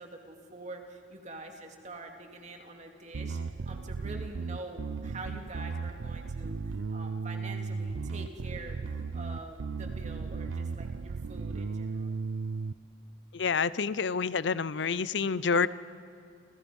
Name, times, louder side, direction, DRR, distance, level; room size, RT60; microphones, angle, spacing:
voice 1, 0.0-3.4 3.7-12.1, right 2 dB, 35° right, 3 dB, 2.6 m, -45 dB
Bass guitar, 3.1-12.7, right 4 dB, 80° right, 0.5 m, -36 dB
voice 2, 13.3-15.7, left 5 dB, 70° left, 17 dB, 0.6 m, -28 dB
29.0 x 27.5 x 5.4 m, 2.5 s
head